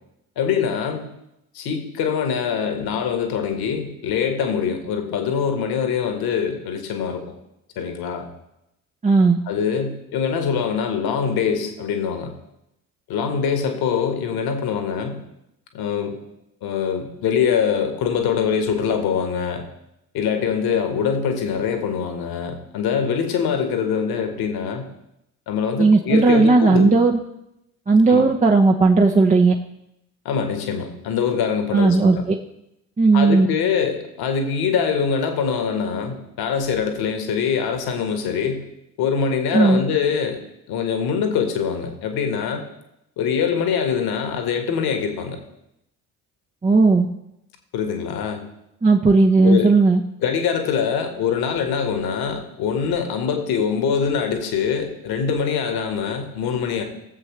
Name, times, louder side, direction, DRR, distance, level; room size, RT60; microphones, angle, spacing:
voice 1, 0.4-1.1 1.5-7.2 7.8-8.3 9.5-12.3 13.1-15.2 15.7-16.2 16.6-19.7 20.1-24.8 25.5-27.0 28.1-28.3 30.3-32.2 33.1-38.6 39.0-40.4 40.7-42.6 43.2-45.4 47.7-48.5 49.4-49.8 50.2-56.8, left 6 dB, 55° left, 5 dB, 1.8 m, -23 dB
voice 2, 9.0-9.4 25.8-27.2 27.9-29.5 31.7-32.4 33.0-33.5 39.5-39.8 46.6-47.1 48.8-50.0, right 3 dB, 15° right, 1 dB, 0.8 m, -15 dB
19.5 x 7.6 x 3.3 m, 0.83 s
figure-of-eight pair, 50°, 44 cm